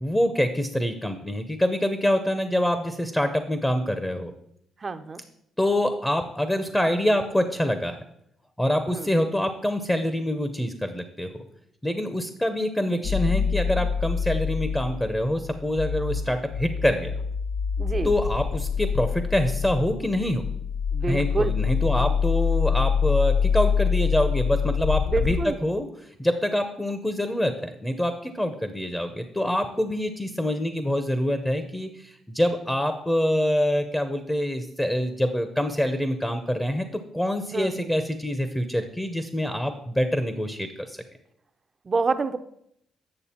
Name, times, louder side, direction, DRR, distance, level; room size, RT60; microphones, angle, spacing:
voice 1, 0.0-4.3 5.6-8.0 8.6-11.4 11.8-17.1 18.0-20.5 21.1-25.9 26.2-36.9 37.1-41.0, left 1 dB, 10° left, 8 dB, 0.7 m, -25 dB
voice 2, 4.8-5.2 8.9-9.1 17.8-18.1 20.9-21.5 21.9-22.2 25.1-25.6 37.5-37.9 41.8-42.4, right 4 dB, 35° right, 11 dB, 0.6 m, -28 dB
sound 1, 13.0-25.5, left 6 dB, 50° left, 0.5 m, -26 dB
8.6 x 6.6 x 4.3 m, 0.74 s
cardioid pair, 90°, 0 cm